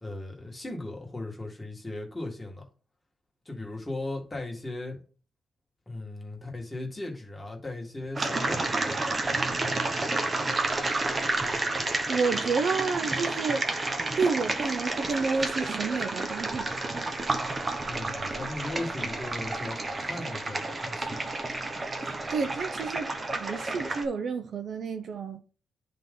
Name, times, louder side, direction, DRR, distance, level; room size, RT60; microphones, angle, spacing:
voice 1, 0.0-2.6 3.5-5.0 5.9-9.3 17.9-21.3, left 2 dB, 15° left, 1.9 m, -37 dB
sound 1, 8.2-24.1, right 2 dB, 30° right, 1.0 m, -30 dB
voice 2, 12.1-13.6 14.2-16.7 22.3-23.1 23.4-25.4, right 4 dB, 60° right, 0.6 m, -30 dB
10.0 x 3.8 x 3.8 m
cardioid pair, 100°, 0 cm